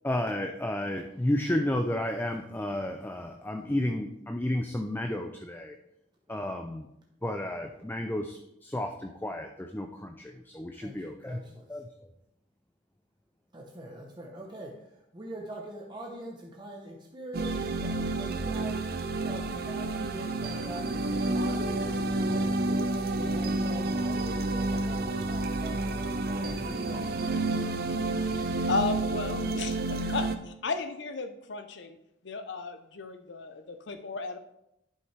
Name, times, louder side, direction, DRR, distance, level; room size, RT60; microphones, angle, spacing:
voice 1, 0.0-5.7 6.3-6.9 7.2-11.4 11.7-11.8, left 1 dB, 10° left, 5 dB, 0.4 m, -32 dB
voice 2, 10.7-11.8 13.5-21.1 21.3-27.5, right 1 dB, 25° right, -1 dB, 0.9 m, -43 dB
sound 1, 17.3-30.4, right 2 dB, 55° right, 0.6 m, -30 dB
voice 3, 28.7-32.0 32.2-34.4, left 3 dB, 70° left, 8 dB, 0.7 m, -34 dB
11.0 x 5.5 x 3.3 m, 0.82 s
head